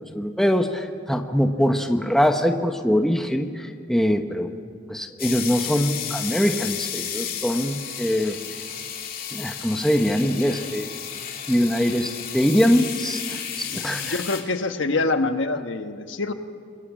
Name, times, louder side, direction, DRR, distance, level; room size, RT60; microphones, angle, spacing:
voice 1, 0.1-4.5 4.9-8.4 9.3-10.9 11.5-14.2, equal, ahead, 5 dB, 1.0 m, -23 dB
sound 1, 5.2-14.4, left 8 dB, 45° left, 2.7 m, -33 dB
voice 2, 13.7-16.3, left 3 dB, 75° left, 7 dB, 1.3 m, -26 dB
27.5 x 21.5 x 7.4 m, 2.2 s
head